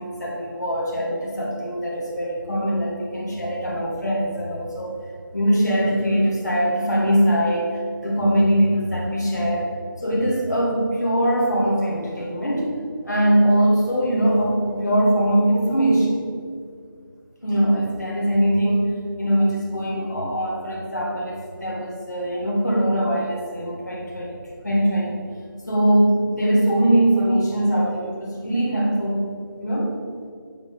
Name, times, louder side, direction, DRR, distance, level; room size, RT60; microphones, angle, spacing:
voice 1, 0.0-4.9 5.3-9.7 10.0-12.8 13.0-16.3 17.4-24.4 24.6-25.2 25.7-29.3 29.6-30.0, right 1 dB, 50° left, -4 dB, 1.7 m, -22 dB
7.4 x 3.8 x 4.9 m, 2.1 s
figure-of-eight pair, 180°, 12 cm